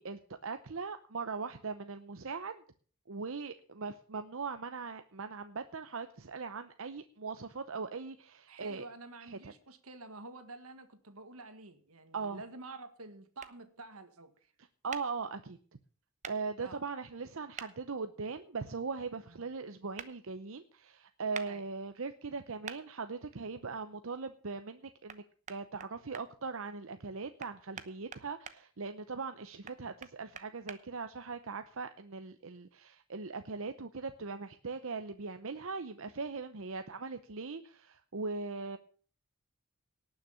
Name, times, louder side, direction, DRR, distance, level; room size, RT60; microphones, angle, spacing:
voice 1, 0.0-2.6 3.1-8.8 9.3-9.5 12.1-12.4 14.8-15.6 16.2-25.2 25.5-38.8, right 4 dB, 65° right, 9 dB, 0.8 m, -40 dB
voice 2, 8.5-14.5 16.6-16.8 19.3-19.5 21.4-21.6, right 3 dB, 80° right, 9 dB, 1.8 m, -49 dB
sound 1, 13.4-13.5 14.9-15.0 16.2-16.4 17.6-17.7 20.0-20.1 21.3-21.5 22.7-22.8 25.1-25.2 25.5-26.3 27.4-28.6 29.7-30.8, right 6 dB, 35° right, 0.9 m, -44 dB
18.5 x 6.7 x 7.0 m, 0.44 s
head